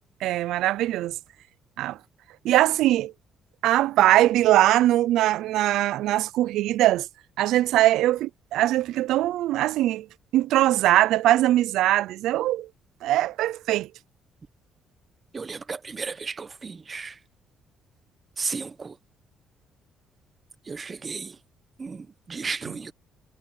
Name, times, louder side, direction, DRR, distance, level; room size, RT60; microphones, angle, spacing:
voice 1, 0.2-1.2 1.8-2.0 2.4-3.1 3.6-7.1 7.4-10.1 10.3-12.7 13.0-13.9, right 14 dB, 80° right, 0.5 m, -21 dB
voice 2, 15.3-17.2 18.4-19.0 20.6-21.4 21.8-22.9, right 4 dB, 30° right, 0.9 m, -34 dB
cardioid pair, 95°, 0 cm